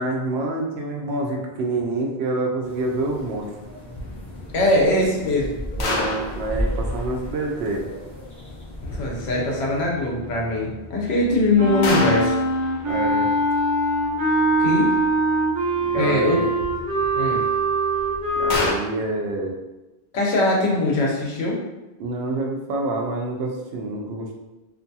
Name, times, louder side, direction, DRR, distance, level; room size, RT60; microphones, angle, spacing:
voice 1, 0.0-3.5 5.8-7.8 12.9-13.3 15.8-16.5 18.4-19.5 22.0-24.3, right 2 dB, 80° right, 1 dB, 0.8 m, -27 dB
sound 1, 2.6-9.8, equal, 20° left, 0.8 m, -34 dB
sound 2, 3.1-18.7, left 2 dB, 55° left, 0.6 m, -34 dB
voice 2, 4.5-5.6 8.9-12.4 14.6-14.9 15.9-16.4 17.2-17.4 20.1-21.6, left 2 dB, 85° left, -2 dB, 0.9 m, -21 dB
Wind instrument woodwind instrument, 11.5-18.6, right 2 dB, 50° right, 1.2 m, -22 dB
2.6 x 2.2 x 2.6 m, 1.0 s
omnidirectional pair, 1.1 m